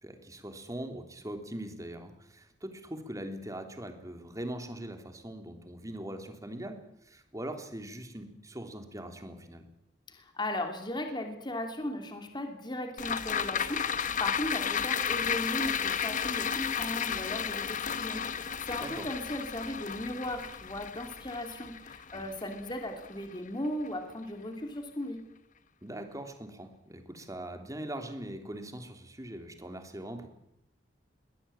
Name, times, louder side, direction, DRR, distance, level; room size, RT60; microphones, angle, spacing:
voice 1, 0.0-6.8 7.0-9.6 18.8-19.1 22.1-22.2 25.8-30.3, right 1 dB, 20° right, 5 dB, 3.2 m, -41 dB
voice 2, 10.1-25.2, left 1 dB, 25° left, 5 dB, 2.9 m, -37 dB
sound 1, 13.0-23.5 23.9-24.0, left 7 dB, 45° left, 1.1 m, -33 dB
23.0 x 17.5 x 8.9 m, 0.80 s
head